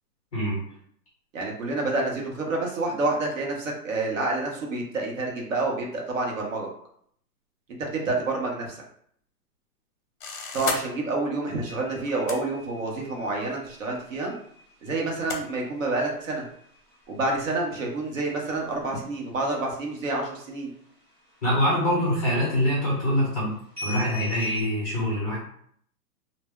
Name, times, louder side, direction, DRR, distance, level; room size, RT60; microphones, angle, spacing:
voice 1, 0.3-0.6 21.4-23.5 23.8-25.4, equal, 25° left, -6 dB, 0.7 m, -24 dB
voice 2, 1.3-6.7 7.9-8.8 10.5-14.3 14.8-16.4 17.1-20.7, right 2 dB, 55° right, -1 dB, 0.8 m, -28 dB
sound 1, 10.2-10.8 12.1-12.4 13.5-13.6 15.3-15.4, left 4 dB, 55° left, 0.7 m, -30 dB
sound 2, 11.5-19.8 20.0-20.5 20.9-22.0 22.3-22.9 23.8-24.6, left 1 dB, 15° right, 0.7 m, -41 dB
2.1 x 2.1 x 3.5 m, 0.64 s
hypercardioid pair, 170°, 48 cm